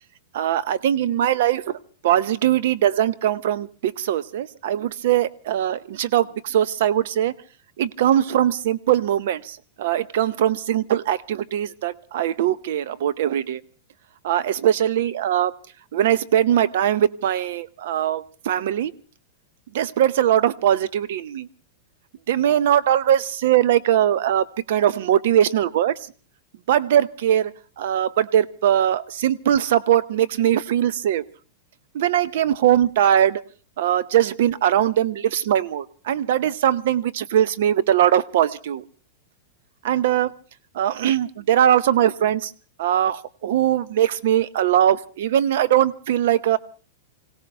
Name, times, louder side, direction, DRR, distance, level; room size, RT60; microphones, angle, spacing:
voice 1, 0.3-1.7 2.0-7.3 7.8-13.6 14.2-15.5 15.9-18.9 19.7-21.5 22.3-26.0 26.7-31.2 31.9-33.4 33.8-38.8 39.8-40.3 40.7-42.5 42.8-46.6, right 10 dB, 65° right, 18 dB, 0.7 m, -21 dB
25.5 x 17.0 x 3.4 m, 0.39 s
supercardioid pair, 160°, 0 cm